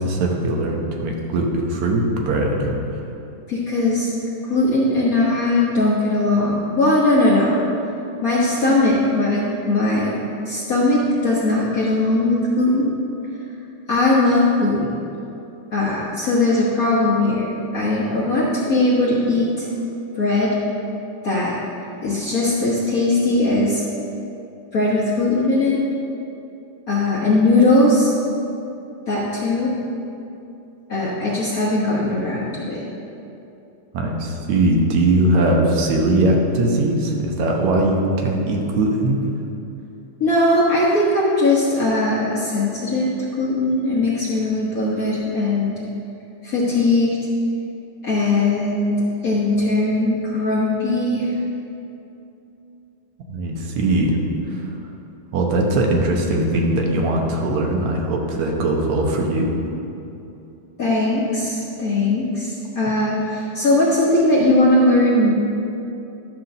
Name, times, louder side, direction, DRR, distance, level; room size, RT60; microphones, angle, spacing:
voice 1, 0.0-2.8 33.9-39.2 53.3-54.6 55.3-59.5, right 1 dB, 70° right, 0 dB, 2.2 m, -20 dB
voice 2, 3.5-4.1 4.4-7.6 8.2-10.1 10.4-12.9 13.9-14.9 15.7-17.5 17.7-19.7 20.1-20.6 21.2-21.5 22.0-23.8 24.7-25.8 26.9-28.1 29.1-29.7 30.9-32.8 40.2-43.1 43.4-45.7 46.4-47.2 48.0-49.0 49.2-51.3 60.8-65.3, left 2 dB, 80° left, -6 dB, 0.7 m, -19 dB
12.0 x 4.5 x 6.6 m, 2.8 s
omnidirectional pair, 3.5 m